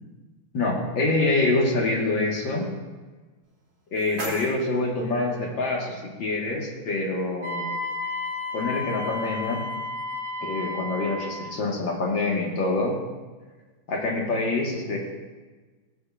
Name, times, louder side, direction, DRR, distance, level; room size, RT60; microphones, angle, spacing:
voice 1, 0.5-2.7 3.9-7.6 8.5-9.6 10.4-13.0 13.9-15.0, left 2 dB, 60° left, -1 dB, 2.2 m, -26 dB
sound 1, 3.4-5.4, right 1 dB, 45° right, 3.8 m, -39 dB
Wind instrument woodwind instrument, 7.4-11.5, left 3 dB, 15° right, 3.3 m, -32 dB
19.0 x 7.5 x 2.4 m, 1.3 s
omnidirectional pair, 2.4 m